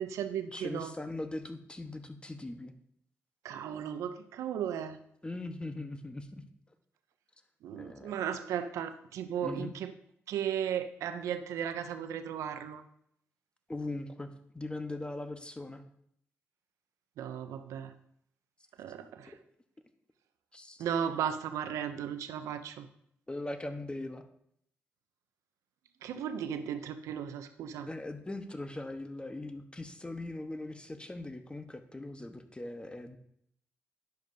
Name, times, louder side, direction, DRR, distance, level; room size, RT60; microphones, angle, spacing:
voice 1, 0.0-0.9 3.4-5.0 7.6-9.9 10.3-12.8 17.2-17.9 18.8-19.3 20.8-22.9 26.0-27.9, right 8 dB, 85° right, 10 dB, 0.5 m, -35 dB
voice 2, 0.5-2.7 5.2-6.4 7.7-8.1 9.4-9.8 13.7-14.3 14.5-15.8 20.5-20.8 23.3-24.2 27.9-33.2, left 2 dB, 20° left, 7 dB, 1.1 m, -40 dB
10.5 x 7.2 x 2.7 m, 0.71 s
supercardioid pair, 50°, 5 cm